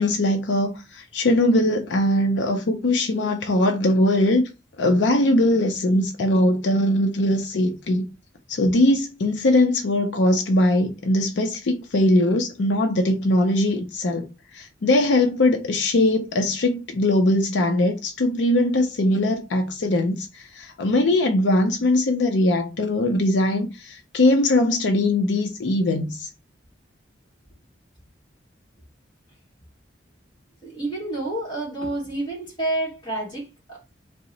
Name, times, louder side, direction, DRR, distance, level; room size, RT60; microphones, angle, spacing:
voice 1, 0.0-4.5 4.8-8.0 8.5-26.3, left 1 dB, 70° left, 0.5 m, -21 dB
voice 2, 30.6-33.8, right 2 dB, 25° left, 1.2 m, -29 dB
2.8 x 2.0 x 3.8 m
head